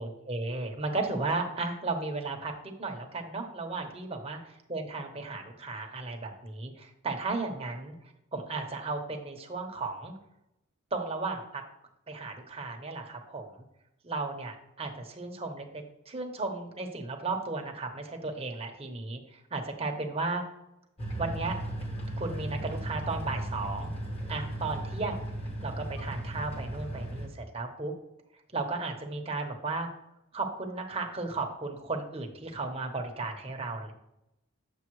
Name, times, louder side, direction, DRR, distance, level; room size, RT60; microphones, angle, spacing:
voice 1, 0.0-4.4 4.7-7.9 8.3-10.1 10.9-11.6 12.1-13.6 14.0-20.4 21.2-21.6 22.2-23.9 24.3-25.2 25.6-27.9 28.5-29.9 30.3-33.9, right 3 dB, 30° right, 2 dB, 1.0 m, -35 dB
sound 1, 21.0-27.3, right 1 dB, 30° left, 1.3 m, -36 dB
8.6 x 6.8 x 3.1 m, 0.85 s
head